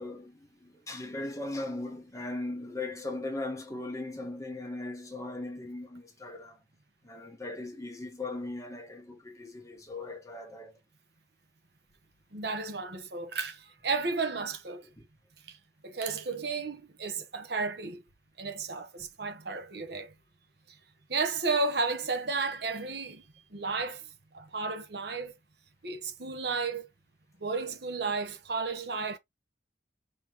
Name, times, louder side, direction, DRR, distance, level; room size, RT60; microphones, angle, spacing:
voice 1, 0.0-6.6 7.0-10.7, left 2 dB, 15° left, 1.4 m, -38 dB
voice 2, 12.3-14.9 15.5-15.6 15.8-18.0 18.4-20.1 21.1-23.2 23.5-24.0 24.3-25.3 25.8-26.9 27.4-29.2, right 4 dB, 60° right, 1.1 m, -33 dB
5.6 x 3.2 x 3.0 m
head